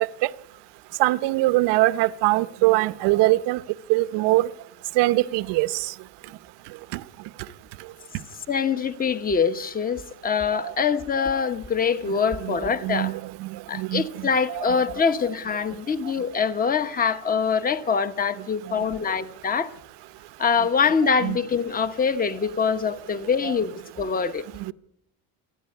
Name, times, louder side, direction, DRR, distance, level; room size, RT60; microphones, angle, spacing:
voice 1, 1.0-3.6 3.9-4.5 5.0-5.7 12.4-12.6 12.8-13.5 13.8-14.0 14.5-14.6 21.2-21.4 23.4-23.5 24.7-24.8, right 19 dB, 65° right, 0.9 m, -22 dB
voice 2, 8.5-13.1 13.7-19.7 20.4-24.4, left 6 dB, 20° left, 1.0 m, -24 dB
28.5 x 11.5 x 9.8 m
cardioid pair, 180°, 45 cm